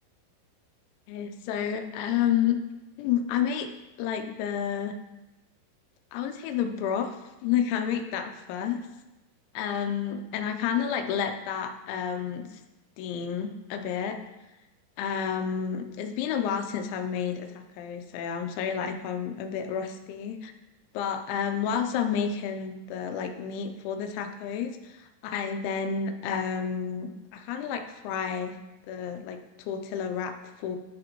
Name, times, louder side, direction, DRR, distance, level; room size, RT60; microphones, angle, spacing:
voice 1, 1.1-2.6 3.0-3.7 4.0-5.0 6.1-7.2 7.4-8.8 9.5-12.6 13.0-14.2 15.0-20.5 20.9-28.6 28.9-30.8, left 8 dB, 90° left, 7 dB, 3.0 m, -30 dB
11.0 x 5.1 x 2.9 m, 1.0 s
omnidirectional pair, 5.3 m